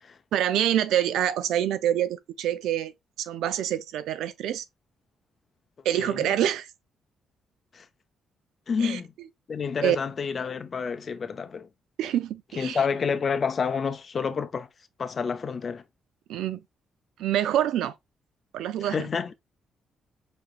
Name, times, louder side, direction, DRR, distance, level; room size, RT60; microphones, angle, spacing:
voice 1, 0.3-2.9 3.2-4.6 5.8-6.7 8.8-9.0 9.8-10.0 12.0-12.8 16.3-16.6 17.2-17.9 18.5-19.0, right 11 dB, 85° right, 0.5 m, -26 dB
voice 2, 6.0-6.3 7.7-7.9 8.7-9.1 9.5-11.7 12.6-14.7 15.0-15.8 18.8-19.3, left 6 dB, 45° left, 0.6 m, -29 dB
5.1 x 2.9 x 2.4 m
cardioid pair, 90°, 0 cm